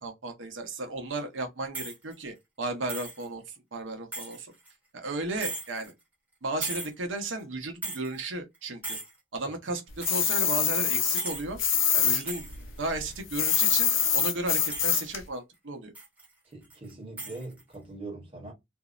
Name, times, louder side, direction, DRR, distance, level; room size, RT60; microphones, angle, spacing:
voice 1, 0.0-4.5 4.9-5.9 6.4-9.0 9.3-11.6 11.9-12.5 12.8-15.9, right 2 dB, 75° right, 0.8 m, -34 dB
sound 1, 1.7-2.1 2.9-3.2 4.1-4.7 5.4-5.9 6.6-6.9 7.4-7.5 7.8-8.2 8.5-8.6 8.8-9.1 10.0-10.3 11.1-11.4 12.2-12.9 13.4-14.2 14.6-15.2 15.9-16.3 16.6-16.9 17.2-17.7, right 2 dB, 10° right, 0.8 m, -37 dB
sound 2, 10.0-12.2 12.5-15.2, left 8 dB, 85° left, 0.6 m, -25 dB
voice 2, 16.5-18.5, right 2 dB, 30° right, 1.1 m, -42 dB
2.6 x 2.0 x 2.4 m
head